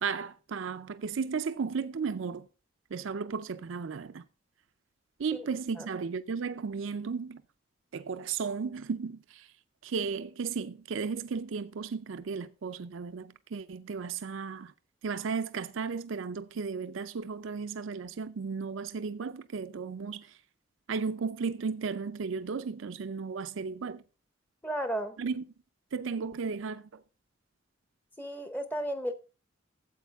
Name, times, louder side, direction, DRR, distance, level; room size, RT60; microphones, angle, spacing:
voice 1, 0.0-2.5 2.9-4.2 5.2-7.4 7.9-9.5 9.8-14.7 15.0-20.4 20.9-24.0 25.2-25.4 25.9-27.0, right 5 dB, 75° right, 0.5 m, -34 dB
voice 2, 24.6-25.2 28.2-29.1, right 1 dB, 10° left, 0.7 m, -33 dB
12.5 x 7.9 x 3.5 m
head